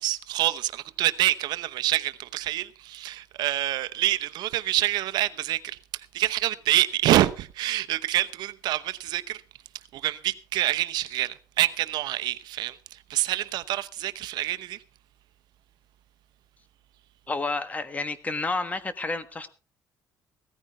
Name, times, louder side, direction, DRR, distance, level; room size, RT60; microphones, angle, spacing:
voice 1, 0.0-9.4 9.9-14.8, right 14 dB, 85° right, 0.8 m, -27 dB
voice 2, 17.3-19.5, left 3 dB, 20° left, 1.4 m, -30 dB
16.5 x 14.0 x 3.6 m
cardioid pair, 125°, 7 cm